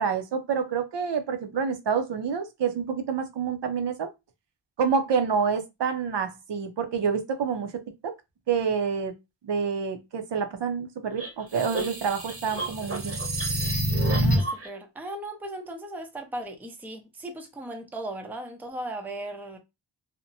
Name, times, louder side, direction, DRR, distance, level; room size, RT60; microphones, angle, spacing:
voice 1, 0.0-4.1 4.8-7.7 8.0-8.1 8.5-9.1 9.4-13.2, right 6 dB, 65° right, 0.6 m, -27 dB
sound 1, 11.2-14.7, right 1 dB, 30° right, 0.8 m, -27 dB
voice 2, 14.2-19.6, right 1 dB, 5° right, 0.5 m, -37 dB
2.8 x 2.1 x 2.6 m
wide cardioid pair, 100°, 47 cm